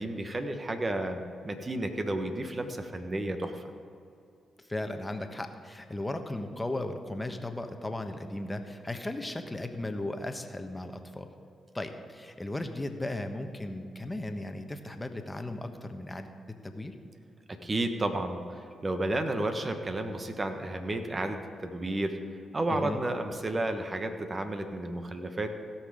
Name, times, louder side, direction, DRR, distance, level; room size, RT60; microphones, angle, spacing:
voice 1, 0.0-3.6 17.6-22.2 22.5-25.5, right 1 dB, 35° right, 6 dB, 1.3 m, -32 dB
voice 2, 4.6-11.3 11.7-16.9 22.7-23.0, left 1 dB, 20° left, 6 dB, 1.2 m, -36 dB
16.5 x 5.9 x 5.1 m, 2.5 s
hypercardioid pair, 45°, 0 cm